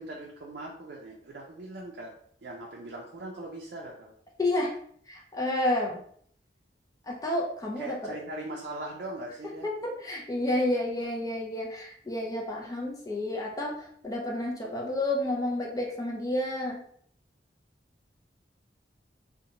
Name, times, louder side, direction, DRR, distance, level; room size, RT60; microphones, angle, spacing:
voice 1, 0.0-2.1 2.4-4.1 7.8-9.7, right 1 dB, 60° right, -2 dB, 0.4 m, -40 dB
voice 2, 4.4-4.7 5.1-6.0 7.1-8.2 9.6-16.8, left 1 dB, 20° left, -1 dB, 0.4 m, -30 dB
2.7 x 2.1 x 2.8 m, 0.62 s
head